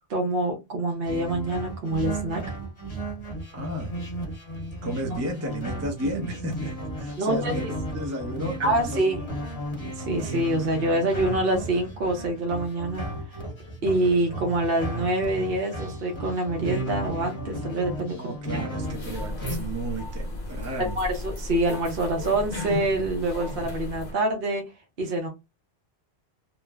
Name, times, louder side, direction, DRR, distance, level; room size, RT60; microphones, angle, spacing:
voice 1, 0.1-2.4 7.2-7.7 8.6-9.2 10.0-13.1 13.8-18.6 20.8-24.6 25.0-25.3, right 1 dB, 60° right, 0.9 m, -26 dB
sound 1, 1.0-19.6, right 1 dB, 30° left, 0.9 m, -34 dB
voice 2, 3.5-3.9 4.8-9.2 18.1-21.0, right 1 dB, 20° right, 0.5 m, -33 dB
sound 2, 18.8-24.1, left 1 dB, 55° left, 1.0 m, -34 dB
3.1 x 2.0 x 2.3 m
omnidirectional pair, 1.1 m